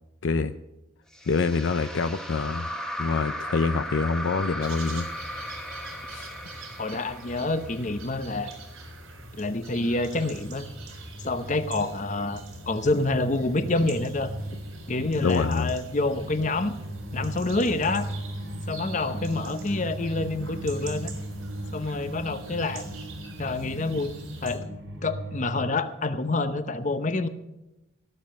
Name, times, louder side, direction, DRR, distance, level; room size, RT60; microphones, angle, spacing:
voice 1, 0.2-0.5 1.3-2.7 3.0-5.1 6.1-6.4 15.2-15.7, left 4 dB, 60° left, 11 dB, 0.5 m, -26 dB
sound 1, 1.1-8.4, equal, 5° left, 1.2 m, -36 dB
sound 2, 4.6-24.6, right 2 dB, 85° right, 4.1 m, -44 dB
voice 2, 6.8-8.5 9.4-10.7 11.2-14.3 14.9-16.7 17.1-18.1 18.7-21.1 21.7-22.9 23.4-24.1 24.4-24.6 25.0-27.3, left 2 dB, 35° left, 11 dB, 0.8 m, -27 dB
sound 3, 9.1-25.7, right 1 dB, 70° right, 2.5 m, -39 dB
17.5 x 7.4 x 7.7 m, 0.98 s
head